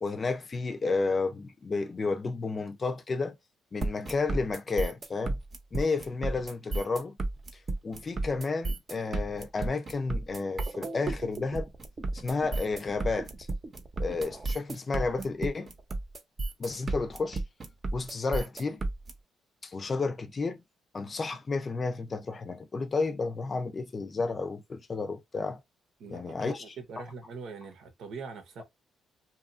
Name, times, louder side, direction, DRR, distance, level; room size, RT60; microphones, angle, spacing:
voice 1, 0.0-3.4 3.7-5.4 5.7-7.2 7.8-11.7 12.1-13.3 14.0-15.7 16.6-17.4 17.9-18.8 19.6-20.6 20.9-25.6 26.1-26.7, left 3 dB, 35° left, 0.5 m, -31 dB
sound 1, 3.8-19.1, right 2 dB, 40° right, 0.8 m, -33 dB
voice 2, 26.0-28.7, right 4 dB, 75° right, 0.9 m, -43 dB
2.8 x 2.4 x 2.5 m
cardioid pair, 90°, 0 cm